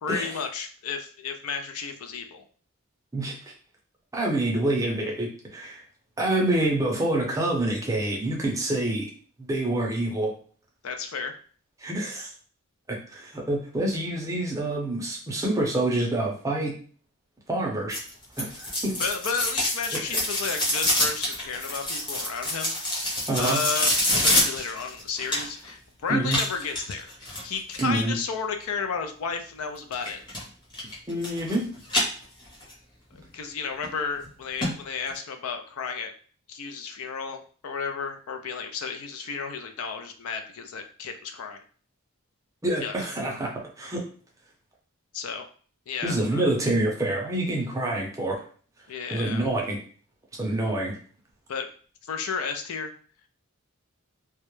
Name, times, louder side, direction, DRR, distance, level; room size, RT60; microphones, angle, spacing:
voice 1, 0.0-2.4 10.8-11.3 19.0-22.7 23.4-30.2 33.3-36.1 36.5-41.6 42.8-42.9 45.1-45.5 45.9-46.4 48.9-49.5 51.5-51.7 52.0-52.9, left 5 dB, 75° left, 6 dB, 0.4 m, -32 dB
voice 2, 4.1-5.8 6.2-9.1 9.4-10.3 11.8-12.3 12.9-16.7 17.5-18.0 18.4-19.0 23.3-23.6 26.1-26.4 27.8-28.2 31.1-31.8 42.6-43.5 43.8-44.0 46.0-48.4 49.1-49.8 50.4-50.9, right 1 dB, 15° right, -1 dB, 0.5 m, -27 dB
sound 1, 17.9-25.7 26.3-28.0 29.9-30.4 30.7-31.6 31.8-32.7 33.1-33.2 33.8-33.9 34.2-34.3 34.6-34.7 35.1-35.2, left 1 dB, 20° left, 0.8 m, -26 dB
2.2 x 2.0 x 3.0 m, 0.43 s
head